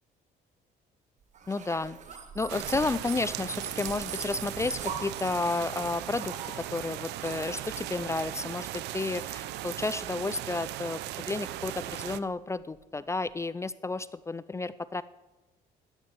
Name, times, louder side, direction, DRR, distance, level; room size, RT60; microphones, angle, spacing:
sound 1, 1.3-8.3, right 6 dB, 45° right, 1.9 m, -42 dB
voice 1, 1.5-2.0 2.3-6.3 6.7-15.0, left 3 dB, 15° left, 16 dB, 0.5 m, -32 dB
sound 2, 2.5-12.2, right 14 dB, 85° right, 0.7 m, -38 dB
sound 3, 4.7-13.3, right 5 dB, 65° right, 4.8 m, -61 dB
14.5 x 12.0 x 6.8 m, 1.1 s
cardioid pair, 110°, 17 cm